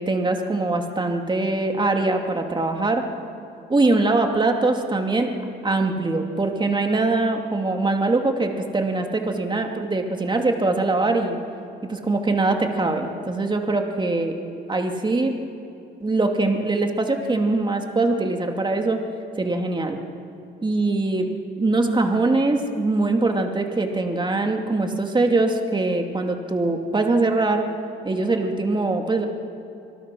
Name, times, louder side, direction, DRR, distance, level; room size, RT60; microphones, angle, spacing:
voice 1, 0.0-3.1 3.7-5.3 5.6-11.4 11.9-14.3 14.7-15.3 16.0-19.0 19.4-20.0 20.6-21.3 21.6-27.6 28.0-29.2, right 2 dB, 25° right, 3 dB, 2.6 m, -22 dB
26.0 x 19.0 x 6.3 m, 2.7 s
cardioid pair, 90°, 20 cm